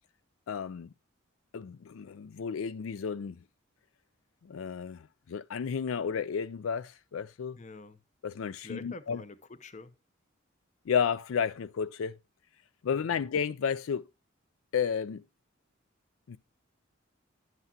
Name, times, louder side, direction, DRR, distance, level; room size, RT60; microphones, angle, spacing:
voice 1, 0.5-0.9 1.5-3.4 4.4-7.6 8.2-9.2 10.9-12.2 12.8-14.1 14.7-15.2 16.3-16.4, left 7 dB, 80° left, 0.4 m, -32 dB
voice 2, 7.6-8.0 8.6-10.0 12.9-13.2, left 3 dB, 35° left, 0.7 m, -47 dB
11.0 x 8.0 x 2.8 m
head